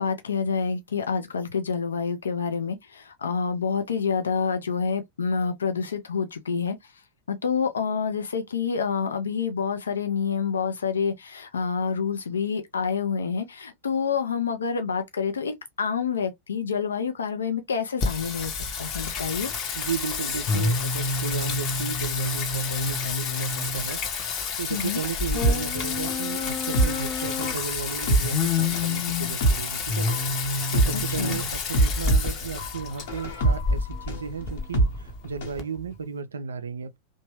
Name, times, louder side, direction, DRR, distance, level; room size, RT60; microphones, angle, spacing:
voice 1, 0.0-6.8 7.3-19.5 24.7-25.0 31.2-31.4, left 6 dB, 70° left, 0.5 m, -28 dB
Singing, 18.0-35.6, left 4 dB, 35° left, 0.8 m, -28 dB
voice 2, 19.7-30.1 30.7-37.0, right 5 dB, 70° right, 0.4 m, -34 dB
sound 1, 25.4-35.6 35.9-36.0, right 2 dB, 55° left, 1.0 m, -26 dB
3.0 x 2.2 x 2.9 m
figure-of-eight pair, 90°, 0 cm